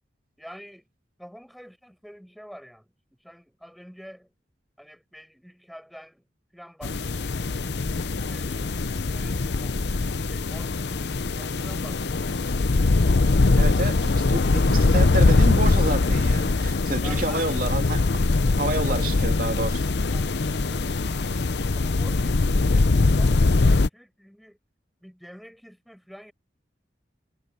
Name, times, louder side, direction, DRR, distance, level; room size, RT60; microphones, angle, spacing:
voice 1, 0.4-0.9 1.2-2.9 3.2-4.3 4.8-6.3 6.5-7.4 8.3-12.8 17.0-17.5 18.8-19.1 21.7-24.6 25.0-26.3, equal, ahead, 7.3 m, -47 dB
sound 1, 6.8-23.9, left 3 dB, 65° left, 0.7 m, -22 dB
voice 2, 13.6-18.1 18.4-19.9, right 2 dB, 50° right, 3.0 m, -29 dB
head